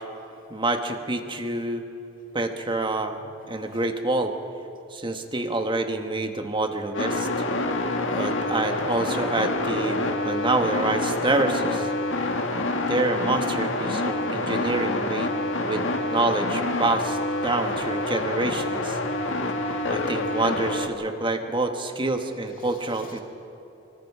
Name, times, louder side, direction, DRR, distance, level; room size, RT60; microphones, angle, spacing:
voice 1, 0.5-1.9 2.3-4.3 4.9-7.3 8.1-11.9 12.9-15.3 15.6-15.8 16.1-17.2 17.4-19.0 19.9-23.2, right 2 dB, 25° right, 6 dB, 1.5 m, -27 dB
voice 2, 3.5-3.8 7.6-8.2 12.0-12.6 17.6-17.7 23.1-23.2, left 4 dB, 45° left, 2 dB, 2.6 m, -52 dB
sound 1, 6.9-20.9, left 2 dB, 80° left, 1.9 m, -27 dB
24.5 x 24.5 x 4.9 m, 2.9 s
head